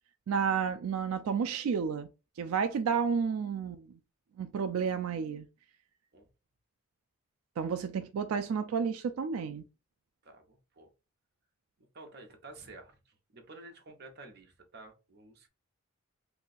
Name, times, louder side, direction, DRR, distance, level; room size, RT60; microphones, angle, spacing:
voice 1, 0.3-2.1 2.4-3.9 4.4-5.5 7.6-9.7, right 6 dB, 85° right, 0.3 m, -31 dB
voice 2, 10.2-10.9 11.9-15.5, right 2 dB, 50° right, 0.8 m, -51 dB
2.7 x 2.3 x 4.0 m
head